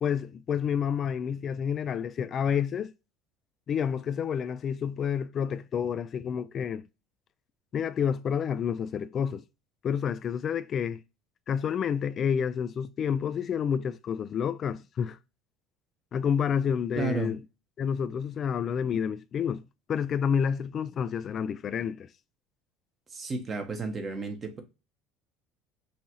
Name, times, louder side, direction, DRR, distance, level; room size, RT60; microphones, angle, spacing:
voice 1, 0.0-2.9 3.7-6.9 7.7-9.4 9.8-11.0 11.5-15.2 16.1-17.4 17.8-22.1, left 7 dB, 45° left, 0.3 m, -29 dB
voice 2, 16.9-17.3 23.1-24.6, right 3 dB, 35° right, 1.1 m, -32 dB
5.5 x 2.6 x 3.0 m
supercardioid pair, 85°, 0 cm